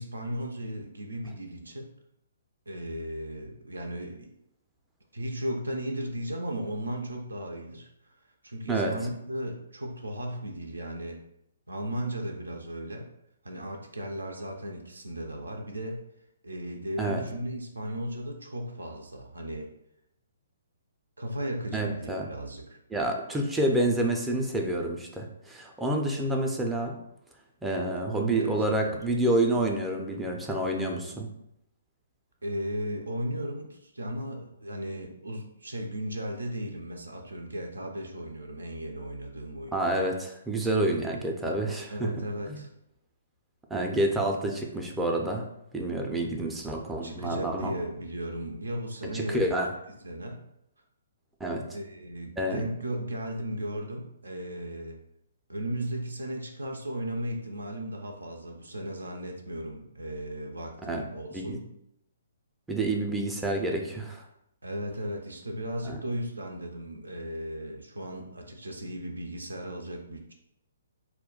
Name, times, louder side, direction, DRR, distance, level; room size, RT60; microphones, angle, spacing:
voice 1, 0.0-1.9 2.7-4.3 5.1-8.2 8.4-11.2 11.7-13.1 13.4-16.0 16.4-19.7 21.2-22.8 28.0-29.0 32.4-39.8 41.9-42.7 47.0-49.6 50.0-50.4 51.7-55.0 55.5-61.7 64.6-70.3, equal, 85° right, 2 dB, 0.4 m, -36 dB
voice 2, 21.7-22.3 22.9-27.0 27.6-31.3 39.7-42.1 42.5-42.6 43.7-45.4 45.7-47.7 49.1-49.7 51.4-51.6 52.4-52.6 60.9-61.0 61.3-61.6 62.7-64.2 65.8-66.0, right 1 dB, 5° right, 1 dB, 0.4 m, -28 dB
2.2 x 2.1 x 3.7 m, 0.79 s
figure-of-eight pair, 135°, 0 cm